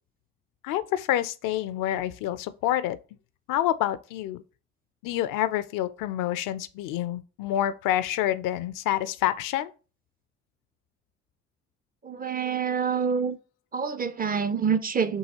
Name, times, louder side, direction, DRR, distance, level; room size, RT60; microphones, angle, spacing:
voice 1, 0.6-3.0 3.5-4.4 5.0-9.7, left 12 dB, 65° left, 0.5 m, -27 dB
voice 2, 12.0-13.4 13.7-15.2, right 6 dB, 25° right, 0.4 m, -26 dB
5.5 x 2.8 x 2.8 m
hypercardioid pair, 45°, 35 cm